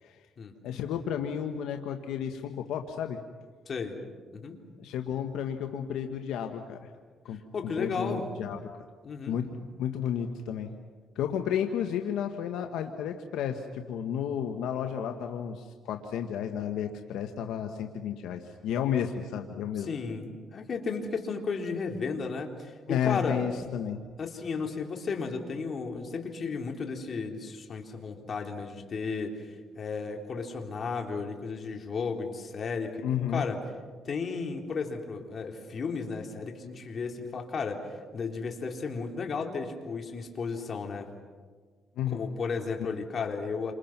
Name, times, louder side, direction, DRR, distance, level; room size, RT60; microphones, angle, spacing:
voice 1, 0.6-3.2 4.8-6.9 7.2-7.4 7.8-8.6 9.3-9.5 9.8-10.7 11.1-19.9 22.9-24.0 33.0-33.5 42.0-42.2, left 8 dB, 90° left, 5 dB, 1.4 m, -32 dB
voice 2, 3.7-4.0 4.3-4.6 7.5-8.3 9.0-9.4 19.8-23.4 24.2-29.5 29.7-33.1 33.3-33.6 34.1-41.1 42.1-43.7, left 4 dB, 50° left, 2 dB, 3.7 m, -34 dB
29.0 x 26.5 x 6.0 m, 1.5 s
cardioid pair, 90°, 0 cm